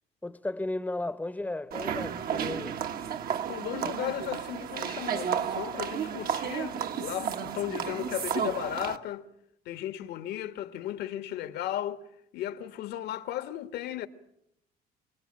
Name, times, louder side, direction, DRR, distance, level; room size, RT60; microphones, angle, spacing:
voice 1, 0.2-2.8, left 2 dB, 10° left, 0.9 m, -34 dB
sound 1, 1.7-9.0, right 8 dB, 60° right, 1.4 m, -32 dB
voice 2, 3.5-9.2 9.6-12.0 12.3-14.1, left 12 dB, 75° left, 1.6 m, -35 dB
27.5 x 19.0 x 8.9 m
cardioid pair, 110°, 17 cm